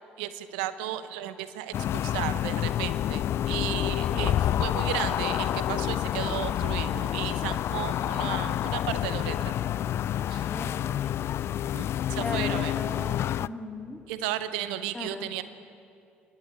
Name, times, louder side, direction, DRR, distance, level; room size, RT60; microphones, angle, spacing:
voice 1, 0.2-9.5 10.3-10.5 11.7-12.7 14.1-15.4, right 12 dB, 75° right, 12 dB, 0.8 m, -34 dB
sound 1, 1.7-13.5, left 11 dB, 55° left, 0.4 m, -28 dB
voice 2, 4.0-4.4 10.4-11.1 12.1-14.0 14.9-15.3, left 2 dB, 15° left, 4 dB, 2.4 m, -38 dB
27.0 x 11.5 x 9.0 m, 2.6 s
hypercardioid pair, 55°, 5 cm